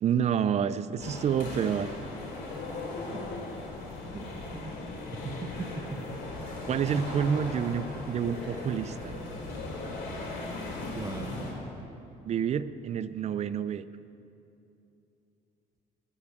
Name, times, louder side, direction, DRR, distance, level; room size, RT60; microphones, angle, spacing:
voice 1, 0.0-1.9 6.7-9.2 12.3-13.8, right 8 dB, 40° right, 14 dB, 0.4 m, -28 dB
sound 1, 1.0-11.5, left 2 dB, 85° left, 3.6 m, -38 dB
voice 2, 4.1-4.8 5.1-6.0 6.6-6.7 10.9-11.5, right 3 dB, 20° right, 6 dB, 0.9 m, -39 dB
9.9 x 8.6 x 8.6 m, 2.8 s
cardioid pair, 110°, 17 cm